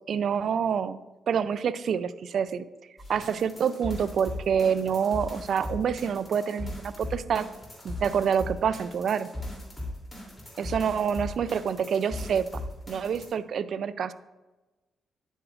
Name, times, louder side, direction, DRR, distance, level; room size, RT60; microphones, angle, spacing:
voice 1, 0.1-1.0 1.3-2.7 3.1-7.5 7.8-9.3 10.6-12.5 12.9-14.1, right 7 dB, 65° right, 15 dB, 0.4 m, -27 dB
sound 1, 3.0-13.3, left 1 dB, 15° left, 2.8 m, -38 dB
9.7 x 8.0 x 2.4 m, 1.1 s
cardioid pair, 70°, 0 cm